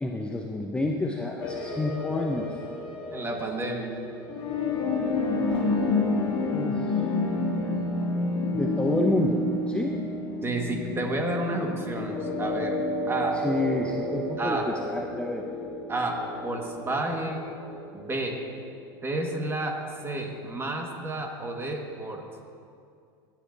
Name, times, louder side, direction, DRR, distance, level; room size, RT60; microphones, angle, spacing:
voice 1, 0.0-2.5 6.5-7.0 8.5-9.4 9.7-10.0 13.4-15.5, left 2 dB, 10° left, 0 dB, 0.6 m, -29 dB
sound 1, 1.4-19.1, left 2 dB, 40° left, 2.0 m, -30 dB
voice 2, 3.1-3.9 10.4-12.8 13.1-13.4 14.4-14.7 15.9-17.4 17.9-18.4 19.0-19.8 20.0-22.2, right 2 dB, 20° right, 2 dB, 1.5 m, -30 dB
15.5 x 7.3 x 2.6 m, 2.4 s
hypercardioid pair, 95°, 12 cm